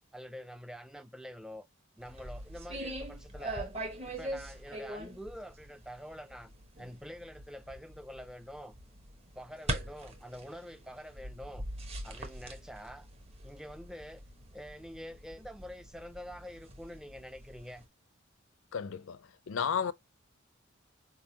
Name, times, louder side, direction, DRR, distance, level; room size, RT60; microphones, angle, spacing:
voice 1, 0.1-1.7 2.0-3.7 4.0-6.5 6.8-8.7 9.4-11.7 12.0-13.1 13.4-14.2 14.5-17.9, equal, 5° right, 0.4 m, -46 dB
sound 1, 2.0-17.8, right 1 dB, 30° right, 0.9 m, -43 dB
voice 2, 18.7-19.2 19.5-19.9, left 7 dB, 70° left, 0.4 m, -32 dB
4.5 x 3.6 x 2.7 m
head